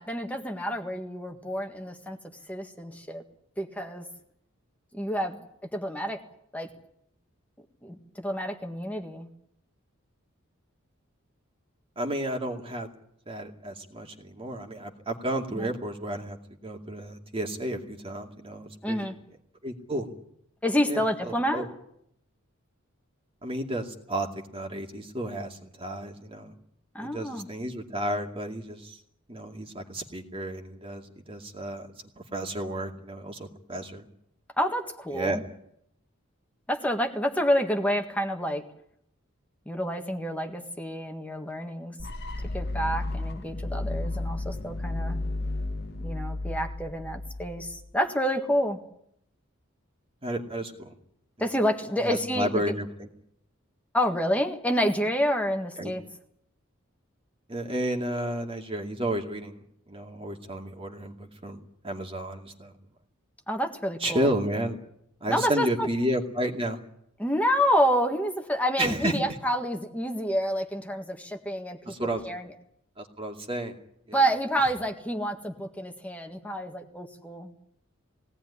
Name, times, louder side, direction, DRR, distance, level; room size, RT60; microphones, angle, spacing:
voice 1, 0.0-2.2 2.5-3.2 3.6-4.1 4.9-5.4 5.7-6.2 6.5-6.7 7.8-9.3 15.6-15.7 18.8-19.1 20.6-21.7 27.0-27.5 34.6-35.4 36.7-38.6 39.7-41.9 42.5-45.2 46.0-48.8 51.4-52.6 53.9-56.0 63.5-64.3 65.3-65.9 67.2-72.0 72.2-72.5 74.1-77.5, equal, 5° left, 4 dB, 1.7 m, -28 dB
voice 2, 12.0-12.9 13.3-16.4 16.6-19.1 19.6-20.1 20.9-21.7 23.4-26.5 27.0-29.0 29.3-31.9 32.2-34.0 35.1-35.5 50.2-50.9 51.4-51.5 52.0-53.1 55.8-55.9 57.5-61.6 61.8-62.7 64.0-64.8 65.2-66.8 68.8-69.3 71.9-72.2 73.0-73.8 74.1-74.2 74.6-74.7, right 1 dB, 25° right, 2 dB, 2.4 m, -32 dB
sound 1, 42.0-47.9, left 2 dB, 55° left, 1.5 m, -33 dB
20.5 x 18.0 x 10.0 m, 0.74 s
head